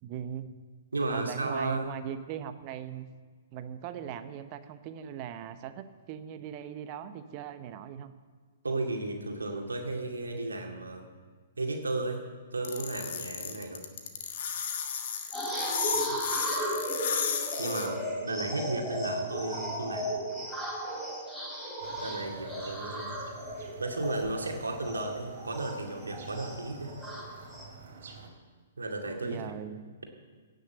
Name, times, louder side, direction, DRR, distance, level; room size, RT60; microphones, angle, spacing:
voice 1, 0.0-0.5 1.1-3.1 3.5-8.1 29.2-29.9, right 9 dB, 35° right, 10 dB, 0.9 m, -39 dB
voice 2, 0.9-1.9 8.6-11.0 11.6-12.2 12.5-13.9 15.9-16.2 17.6-20.1 22.0-23.1 23.5-27.0 28.8-29.4, right 2 dB, 80° right, 2 dB, 2.3 m, -34 dB
sound 1, 12.6-17.9, left 7 dB, 50° left, 1.6 m, -33 dB
sound 2, 15.3-27.6, equal, 5° left, 4.7 m, -36 dB
sound 3, 21.8-28.3, right 5 dB, 55° right, 3.0 m, -48 dB
17.0 x 6.5 x 7.9 m, 1.5 s
figure-of-eight pair, 115°, 0 cm